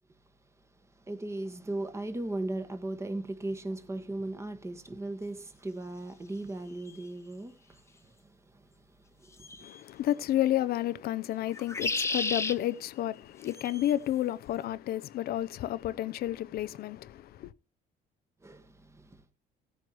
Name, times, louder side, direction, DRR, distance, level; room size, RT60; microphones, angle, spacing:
voice 1, 1.0-8.8 9.2-9.6 18.4-19.2, right 2 dB, 15° right, 1.5 m, -38 dB
sound 1, 6.9-7.0 9.4-9.8 11.5-12.6 13.5-13.9, left 3 dB, 15° left, 0.8 m, -32 dB
voice 2, 9.6-17.5, left 13 dB, 65° left, 0.6 m, -31 dB
17.0 x 9.2 x 3.0 m
cardioid pair, 110°, 17 cm